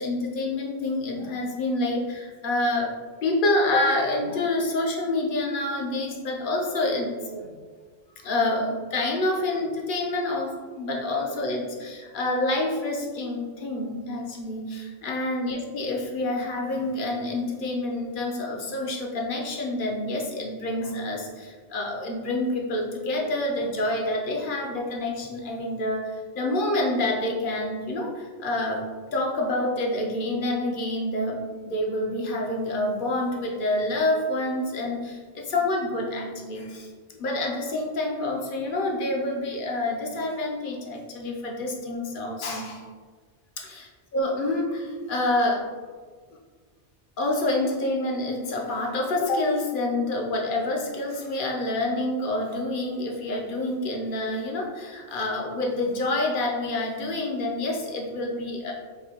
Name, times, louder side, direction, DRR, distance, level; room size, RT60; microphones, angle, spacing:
voice 1, 0.0-2.9 3.2-7.5 8.2-28.8 29.1-36.9 37.2-42.9 43.6-45.7 47.2-58.7, left 2 dB, 55° left, 0 dB, 0.7 m, -27 dB
4.9 x 2.2 x 2.8 m, 1.5 s
omnidirectional pair, 1.1 m